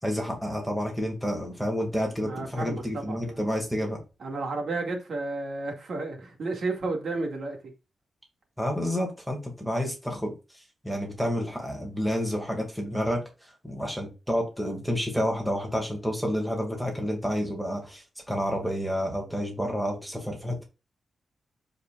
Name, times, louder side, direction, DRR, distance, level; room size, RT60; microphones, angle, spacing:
voice 1, 0.0-4.0 8.6-20.6, equal, ahead, 2.4 m, -30 dB
voice 2, 2.2-3.5 4.2-7.7, right 3 dB, 55° right, 2.3 m, -32 dB
13.5 x 5.2 x 2.5 m
wide cardioid pair, 175°, 0 cm